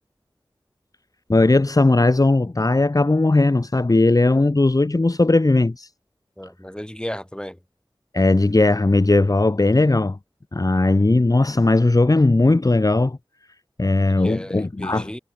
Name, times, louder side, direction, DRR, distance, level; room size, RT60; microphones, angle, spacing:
voice 1, 1.3-5.9 8.1-10.2 10.5-13.2 13.8-15.2, left 2 dB, 45° left, 1.7 m, -18 dB
voice 2, 6.4-7.6 14.1-15.2, equal, 10° left, 7.5 m, -34 dB
wide cardioid pair, 55°, 9 cm